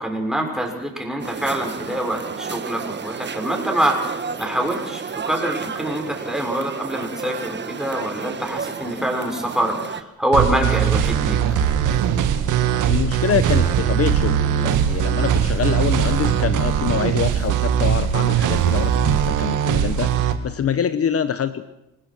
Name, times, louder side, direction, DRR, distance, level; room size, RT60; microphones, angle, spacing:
voice 1, 0.0-11.4, right 1 dB, ahead, 2 dB, 6.6 m, -25 dB
sound 1, 1.2-10.0, right 6 dB, 35° right, 1.6 m, -31 dB
sound 2, 10.3-20.3, right 9 dB, 85° right, 2.1 m, -20 dB
voice 2, 12.9-21.7, left 8 dB, 50° left, 12 dB, 1.1 m, -25 dB
26.5 x 18.5 x 6.4 m, 0.87 s
cardioid pair, 90°, 30 cm